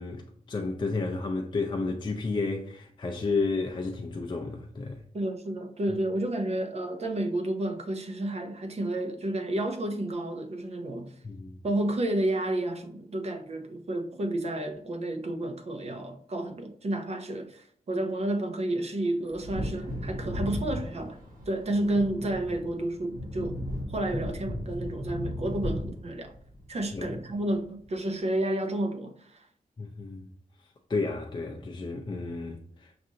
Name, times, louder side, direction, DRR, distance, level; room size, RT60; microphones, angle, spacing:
voice 1, 0.0-5.0 11.2-11.6 26.9-27.2 29.8-30.3 30.9-32.9, left 3 dB, 30° left, 0.4 m, -32 dB
voice 2, 5.1-11.1 11.6-21.2 21.5-23.6 23.9-26.3 26.7-29.5, right 1 dB, 45° right, 0.6 m, -31 dB
Wind / Thunder, 19.3-27.5 27.8-27.9, equal, 65° right, 1.2 m, -36 dB
6.0 x 2.5 x 2.7 m
wide cardioid pair, 140°, 15 cm